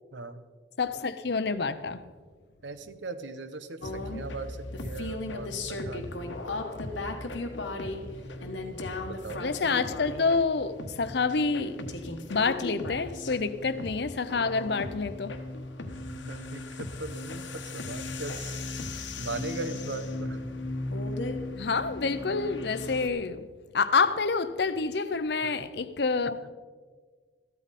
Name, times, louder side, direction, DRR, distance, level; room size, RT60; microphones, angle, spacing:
voice 1, 0.1-0.4 2.6-6.3 9.1-9.4 16.0-18.6 19.2-20.4 25.4-25.7 26.4-26.5, right 3 dB, 80° right, 0.9 m, -39 dB
voice 2, 0.8-2.0 9.4-11.8 12.3-15.4 21.5-23.5 23.7-26.5, left 4 dB, 65° left, 0.6 m, -28 dB
sound 1, 3.8-23.1, left 2 dB, 90° left, 1.3 m, -36 dB
14.5 x 12.5 x 4.2 m
head